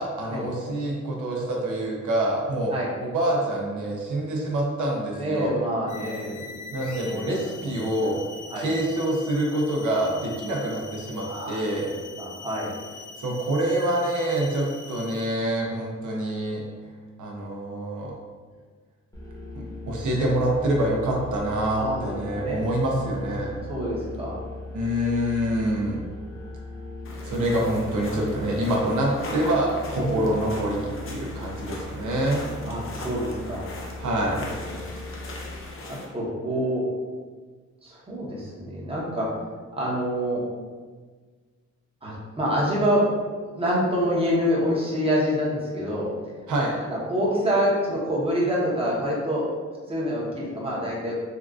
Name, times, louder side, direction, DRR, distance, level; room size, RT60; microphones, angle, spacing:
voice 1, 0.0-5.6 6.7-8.2 8.6-11.9 13.2-16.6 17.2-18.1 19.5-23.5 24.7-26.0 27.2-32.4 34.0-34.5 46.5-46.7, right 1 dB, 85° right, -2 dB, 0.7 m, -26 dB
voice 2, 5.1-7.3 7.6-8.2 8.5-8.7 11.2-12.7 21.8-22.6 22.9-23.2 23.7-24.4 30.0-30.3 32.6-33.6 34.2-34.8 36.1-36.8 37.8-39.3 39.7-40.4 42.0-43.0 43.5-46.1 46.8-49.4 49.9-51.1, equal, 20° right, -5 dB, 0.9 m, -27 dB
sound 1, 5.9-15.4, left 4 dB, 90° left, 0.5 m, -43 dB
sound 2, 19.1-35.6, left 2 dB, 10° left, 0.9 m, -38 dB
sound 3, 27.0-36.1, left 2 dB, 45° left, 0.6 m, -40 dB
3.6 x 2.4 x 2.3 m, 1.5 s
cardioid pair, 100°, 30 cm